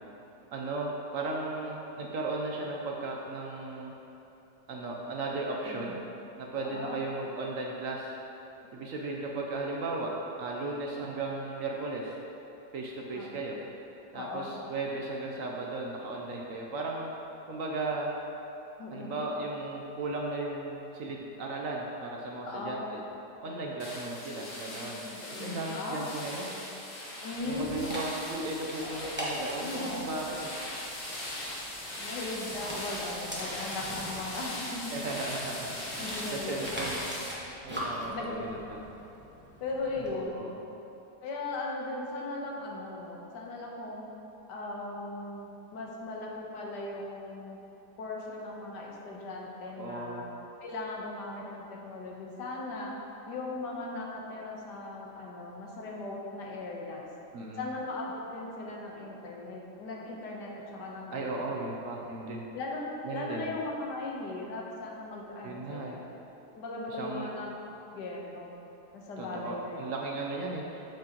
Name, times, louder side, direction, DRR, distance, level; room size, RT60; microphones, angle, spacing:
voice 1, 0.5-3.9 4.7-6.0 6.4-8.1 8.7-10.1 10.4-12.2 12.7-13.6 14.1-17.1 17.5-18.1 18.9-23.0 23.4-25.0 25.3-26.6 27.4-30.5 34.9-37.1 37.6-38.8 40.4-40.5 49.8-50.2 57.3-57.6 61.1-62.5 63.0-63.5 65.4-66.0 66.9-67.3 69.2-71.0, right 2 dB, 60° right, -1 dB, 0.9 m, -36 dB
voice 2, 6.6-7.0 8.8-8.9 13.1-13.4 14.1-14.5 18.8-19.2 22.4-22.8 25.1-26.1 27.2-28.0 29.6-30.0 32.0-35.0 36.0-36.9 37.8-38.4 39.6-40.5 41.2-44.1 44.5-47.6 48.0-50.3 50.6-52.9 53.3-57.1 57.6-61.5 62.5-66.0 66.5-67.6 67.9-68.5 68.9-69.9, left 2 dB, 80° left, -2 dB, 1.6 m, -38 dB
sound 1, 23.8-37.3, left 1 dB, 60° left, 2.0 m, -40 dB
Dog, 27.3-40.2, equal, 10° right, 1.0 m, -42 dB
7.6 x 7.3 x 2.9 m, 3.0 s
omnidirectional pair, 1.8 m